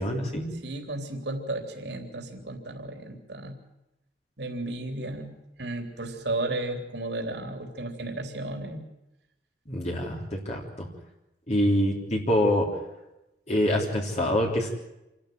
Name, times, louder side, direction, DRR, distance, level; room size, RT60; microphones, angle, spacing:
voice 1, 0.0-0.5 9.7-10.9 11.5-12.7 13.5-14.7, left 1 dB, 40° left, -1 dB, 3.6 m, -25 dB
voice 2, 0.6-3.6 4.4-5.3 5.6-8.8, right 2 dB, 70° right, 4 dB, 3.5 m, -34 dB
27.5 x 12.0 x 9.4 m, 0.90 s
head